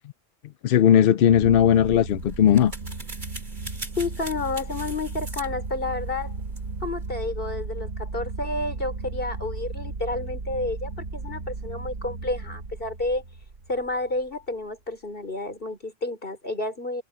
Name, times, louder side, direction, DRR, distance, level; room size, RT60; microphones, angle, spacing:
voice 1, 0.6-2.7, left 9 dB, 65° left, 0.6 m, -17 dB
sound 1, 1.3-14.2, right 3 dB, 85° right, 2.1 m, -35 dB
sound 2, 1.7-7.1, right 1 dB, 35° right, 5.7 m, -43 dB
voice 2, 4.0-6.4 6.8-13.2 13.7-17.0, left 2 dB, 45° left, 4.5 m, -30 dB
omnidirectional pair, 1.3 m